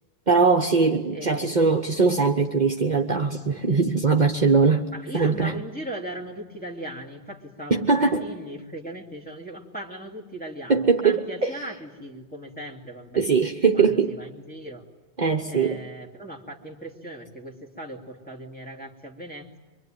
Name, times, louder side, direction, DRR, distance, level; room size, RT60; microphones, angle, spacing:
voice 1, 0.3-5.6 7.7-8.3 10.7-11.5 13.1-14.1 15.2-15.8, right 4 dB, 45° right, 4 dB, 1.2 m, -21 dB
voice 2, 1.1-1.5 4.9-13.2 13.7-14.9 15.4-19.6, right 1 dB, 10° left, 0 dB, 2.9 m, -38 dB
25.0 x 24.5 x 9.2 m, 1.2 s
omnidirectional pair, 1.1 m